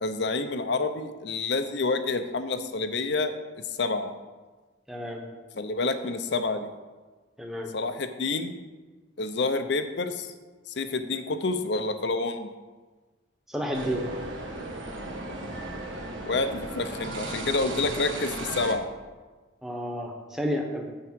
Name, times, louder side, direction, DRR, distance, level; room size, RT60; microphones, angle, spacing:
voice 1, 0.0-3.3 3.7-4.1 5.6-6.7 7.7-8.5 9.2-10.3 10.7-12.5 16.3-18.9, left 3 dB, 60° left, 9 dB, 0.7 m, -28 dB
voice 2, 4.9-5.2 7.4-7.7 13.5-14.0 19.6-20.8, equal, ahead, 0 dB, 1.0 m, -31 dB
sound 1, 13.7-18.7, right 2 dB, 80° right, 1.3 m, -35 dB
8.5 x 4.7 x 7.5 m, 1.3 s
head